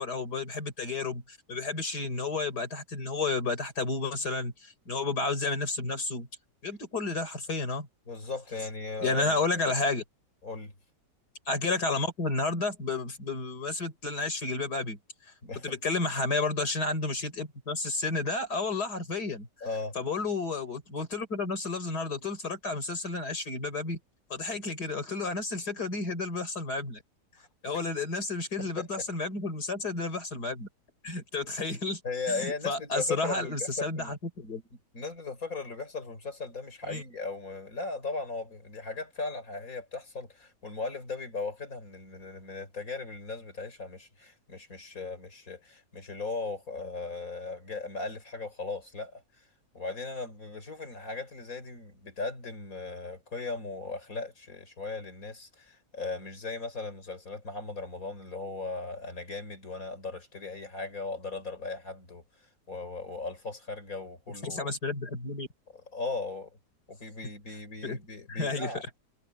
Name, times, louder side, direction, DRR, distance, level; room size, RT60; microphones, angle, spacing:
voice 1, 0.0-6.3 6.6-7.9 9.0-10.0 11.5-15.0 15.6-19.5 19.9-24.0 24.3-27.0 27.6-30.7 31.0-32.0 32.3-34.6 36.9-37.0 64.4-65.5 67.8-68.0 68.3-68.7, left 3 dB, 70° left, 5.0 m, -31 dB
voice 2, 8.1-9.5 10.4-10.7 15.4-15.7 19.6-19.9 27.4-27.5 28.6-29.1 32.0-34.1 34.9-49.4 49.7-62.2 62.7-64.7 65.9-66.6 66.9-68.8, left 3 dB, 55° left, 5.0 m, -37 dB
omnidirectional pair, 1.8 m